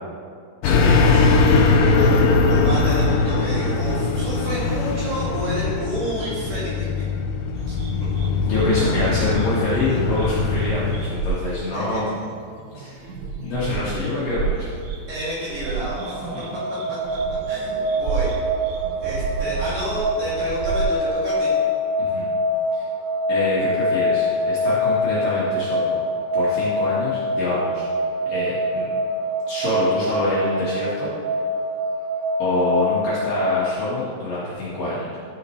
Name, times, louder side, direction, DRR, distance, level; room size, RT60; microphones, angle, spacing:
sound 1, 0.6-11.0, left 3 dB, 80° left, 2.7 m, -20 dB
voice 1, 0.6-1.2 8.4-12.2 12.7-13.1 13.3-14.7 16.3-16.6 22.0-22.3 22.7-22.8 23.3-26.0 26.3-27.8 28.3-28.9 29.5-31.1 32.4-35.2, left 1 dB, 55° left, -9 dB, 2.7 m, -26 dB
voice 2, 1.9-6.9 7.7-7.8 11.7-12.0 15.1-16.3 16.9-17.0 17.5-18.3 19.0-21.5, right 1 dB, 50° right, -10 dB, 3.7 m, -30 dB
sound 2, 7.6-20.8, right 4 dB, 90° right, 2.1 m, -32 dB
sound 3, 15.6-33.7, left 1 dB, 75° right, 3.8 m, -24 dB
14.0 x 6.7 x 3.2 m, 2.2 s
omnidirectional pair, 5.5 m